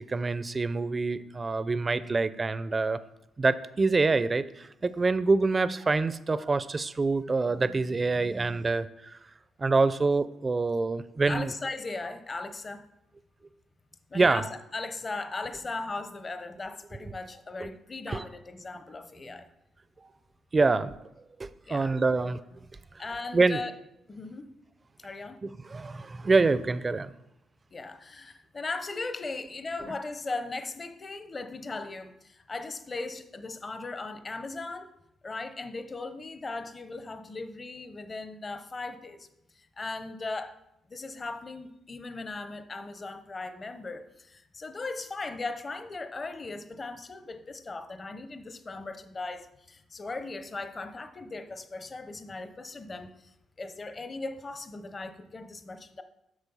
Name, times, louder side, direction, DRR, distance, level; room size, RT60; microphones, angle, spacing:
voice 1, 0.0-3.0 3.4-9.2 9.6-11.5 14.1-14.4 17.6-17.7 18.1-18.2 20.0-20.1 20.5-20.9 21.4-22.4 23.3-23.6 25.4-27.1 29.8-30.0, right 3 dB, 30° right, 15 dB, 0.5 m, -26 dB
voice 2, 11.3-12.9 14.1-19.5 21.7-21.9 23.0-23.7 24.1-24.5 25.0-25.4 27.7-34.9 35.2-39.3 39.6-40.6 40.9-56.0, left 3 dB, 30° left, 9 dB, 0.8 m, -38 dB
8.2 x 6.3 x 5.5 m, 0.86 s
cardioid pair, 90°, 0 cm